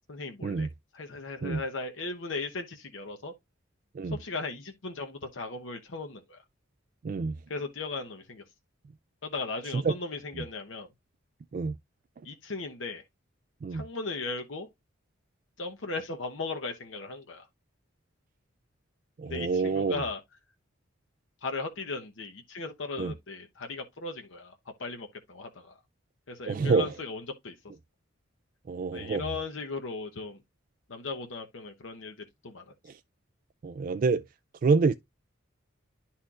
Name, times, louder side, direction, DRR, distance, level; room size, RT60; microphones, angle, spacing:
voice 1, 0.1-0.7 0.9-3.3 4.1-6.4 7.5-8.4 9.2-10.9 12.2-13.0 13.7-14.7 15.6-17.5 19.2-20.2 21.4-25.8 26.3-27.5 28.9-30.4 30.9-32.7, left 3 dB, 80° left, 1.0 m, -37 dB
voice 2, 7.0-7.4 9.7-9.9 11.5-11.8 13.6-13.8 19.2-20.0 23.0-23.1 26.5-26.9 28.7-29.3 32.9-33.0 33.6-34.2 34.6-34.9, right 4 dB, 45° right, 0.3 m, -27 dB
11.5 x 4.3 x 2.4 m
head